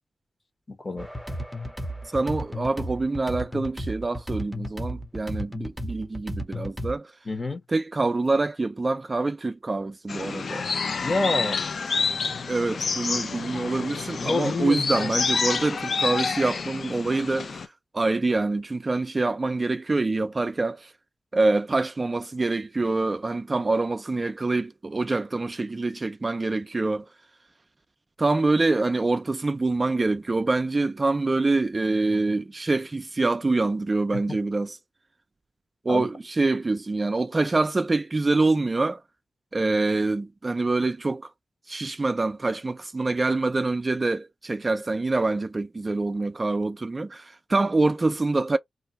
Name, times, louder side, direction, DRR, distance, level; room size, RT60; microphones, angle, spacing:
voice 1, 0.7-1.1 7.3-7.6 11.0-11.6 14.2-15.1 35.9-36.0, left 3 dB, 35° left, 1.0 m, -27 dB
sound 1, 1.0-7.0, equal, 5° left, 0.7 m, -34 dB
voice 2, 2.1-7.1 7.7-10.7 12.5-20.9 21.3-27.1 28.2-34.8 35.8-39.0 39.5-41.3 41.7-48.6, right 3 dB, 35° right, 0.3 m, -25 dB
sound 2, 10.1-17.7, left 5 dB, 65° left, 0.4 m, -28 dB
2.5 x 2.2 x 4.0 m
wide cardioid pair, 90°, 0 cm